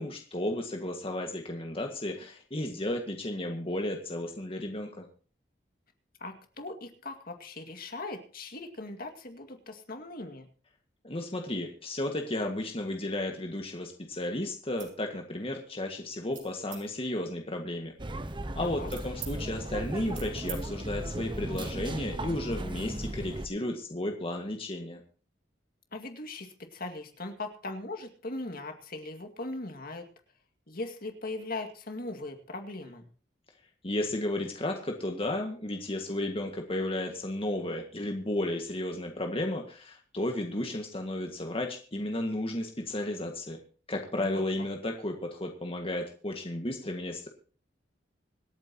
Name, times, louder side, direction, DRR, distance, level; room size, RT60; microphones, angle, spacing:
voice 1, 0.0-5.1 11.0-17.9 18.5-25.0 33.8-43.6 43.9-47.3, left 1 dB, 30° left, 3 dB, 1.8 m, -33 dB
voice 2, 6.2-10.5 18.6-18.9 25.9-30.1 30.7-33.1 44.2-44.4, left 2 dB, 55° left, 5 dB, 2.2 m, -39 dB
sound 1, 14.6-15.0 15.4-15.8 16.3-16.8 17.5-19.3 19.7-20.6 20.9-21.1 21.5-21.7, right 10 dB, 90° right, 4.8 m, -46 dB
sound 2, 18.0-23.5, right 1 dB, 25° right, 1.0 m, -36 dB
26.0 x 9.1 x 2.9 m, 0.40 s
head